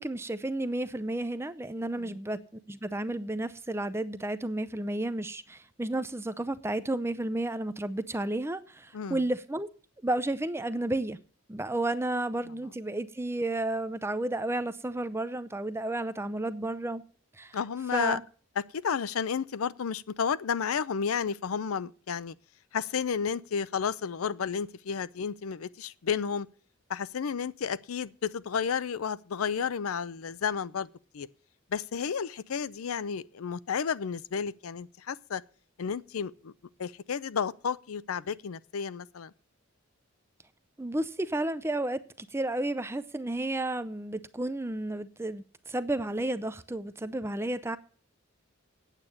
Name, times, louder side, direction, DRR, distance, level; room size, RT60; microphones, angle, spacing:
voice 1, 0.0-2.4 2.7-9.7 10.0-11.2 11.5-17.0 17.4-17.6 17.9-18.2 40.8-47.8, right 1 dB, 10° right, 0.5 m, -32 dB
voice 2, 17.5-18.2 18.7-22.4 22.7-26.5 26.9-30.9 31.1-31.3 31.7-35.4 35.8-36.5 36.8-39.3, left 6 dB, 85° left, 0.5 m, -32 dB
9.0 x 8.0 x 7.1 m
head